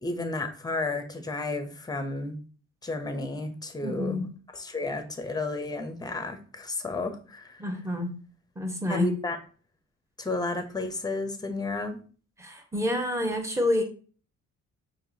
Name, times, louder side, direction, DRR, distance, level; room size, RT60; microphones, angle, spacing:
voice 1, 0.0-2.4 2.8-4.3 4.5-7.7 8.9-9.4 10.2-12.0, left 2 dB, 15° left, 7 dB, 0.7 m, -32 dB
voice 2, 3.8-4.2 7.6-8.1 8.6-9.1 12.4-13.8, left 1 dB, 10° right, 2 dB, 1.0 m, -28 dB
4.7 x 3.0 x 2.7 m, 0.39 s
cardioid pair, 90°, 30 cm